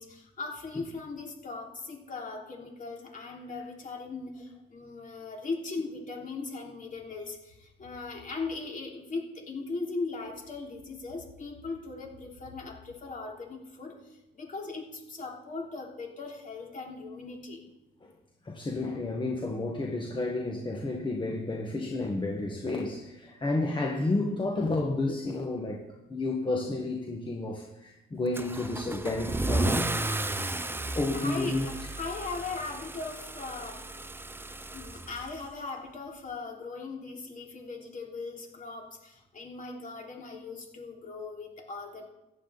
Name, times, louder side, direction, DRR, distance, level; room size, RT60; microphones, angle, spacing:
voice 1, 0.0-17.6 31.1-34.1 34.7-42.1, left 3 dB, 40° left, 0 dB, 3.3 m, -39 dB
voice 2, 18.4-25.8 26.1-29.9 30.9-31.7, left 2 dB, 25° left, -1 dB, 1.6 m, -31 dB
Car / Engine starting / Accelerating revving vroom, 28.3-35.7, right 2 dB, 10° right, 0.7 m, -33 dB
14.5 x 10.0 x 4.1 m, 0.95 s
cardioid pair, 90°, 20 cm